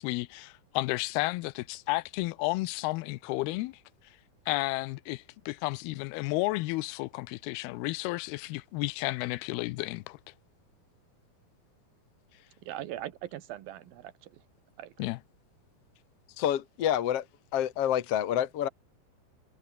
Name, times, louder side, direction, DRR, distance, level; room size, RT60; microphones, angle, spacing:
voice 1, 0.0-3.8 4.5-10.2 15.0-15.2, left 21 dB, 90° left, 2.6 m, -32 dB
voice 2, 12.6-14.4 14.8-15.1, right 13 dB, 75° right, 3.0 m, -41 dB
voice 3, 16.4-17.3 17.5-18.7, left 10 dB, 60° left, 1.7 m, -28 dB
omnidirectional pair, 4.4 m